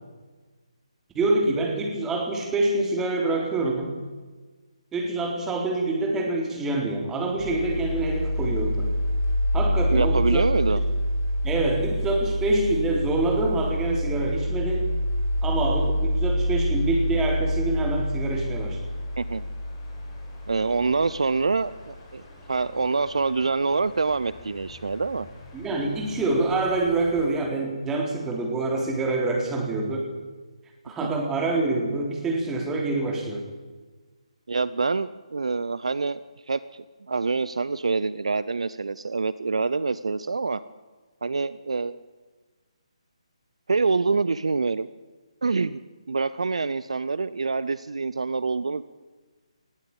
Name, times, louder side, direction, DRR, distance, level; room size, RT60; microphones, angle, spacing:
voice 1, 1.2-3.9 4.9-9.0 9.5-10.4 10.8-10.9 11.4-14.9 15.4-18.8 25.5-30.1 30.8-33.4, right 2 dB, 10° right, 1 dB, 3.6 m, -26 dB
sound 1, 7.4-27.3, equal, 25° left, 4.8 m, -28 dB
voice 2, 9.9-10.8 19.2-19.4 20.5-22.2 22.5-25.3 31.0-31.1 34.5-36.2 36.5-40.6 41.2-42.0 43.7-44.9 45.4-45.8 46.1-48.8, right 4 dB, 65° right, 16 dB, 0.7 m, -26 dB
19.0 x 15.0 x 8.9 m, 1.4 s
figure-of-eight pair, 145°, 3 cm